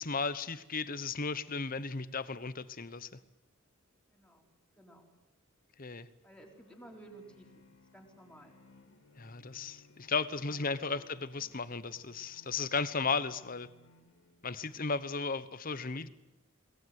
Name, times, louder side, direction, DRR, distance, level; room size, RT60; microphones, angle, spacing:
voice 1, 0.0-3.1 5.8-6.1 9.2-13.7 14.4-16.1, left 4 dB, 45° left, 15 dB, 1.1 m, -35 dB
voice 2, 4.1-4.5 4.8-5.1 6.2-7.7 7.9-8.6 9.9-10.0 10.4-11.1, right 1 dB, 5° left, 1 dB, 4.2 m, -55 dB
sound 1, 6.4-14.7, left 2 dB, 60° left, 3.2 m, -63 dB
22.5 x 20.0 x 9.5 m, 1.0 s
head